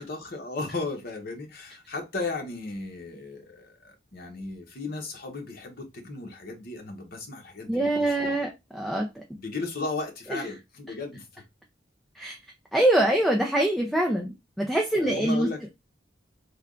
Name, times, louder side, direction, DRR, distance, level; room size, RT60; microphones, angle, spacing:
voice 1, 0.0-8.4 9.3-11.4 15.0-15.6, left 3 dB, 55° left, 1.0 m, -35 dB
voice 2, 7.7-9.1 10.3-10.4 12.2-12.4 12.7-15.5, right 1 dB, ahead, 0.4 m, -24 dB
3.4 x 2.3 x 3.6 m
head